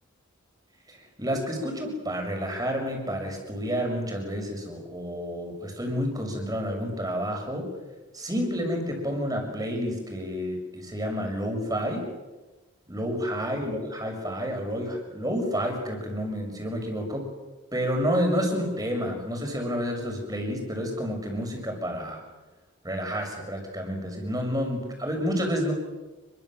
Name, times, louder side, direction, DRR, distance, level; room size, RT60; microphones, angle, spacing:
voice 1, 1.2-7.7 8.1-12.1 12.9-17.2 17.7-22.2 22.8-25.7, equal, 15° right, 2 dB, 6.5 m, -29 dB
29.5 x 23.0 x 7.6 m, 1.2 s
head